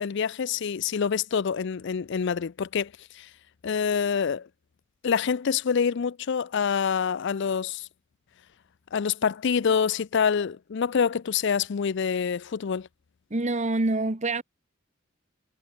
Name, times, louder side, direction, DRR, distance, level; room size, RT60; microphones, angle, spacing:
voice 1, 0.0-3.3 3.6-4.5 5.0-7.9 8.9-12.9, left 6 dB, 65° left, 0.5 m, -26 dB
voice 2, 13.3-14.4, right 2 dB, 35° right, 1.3 m, -26 dB
head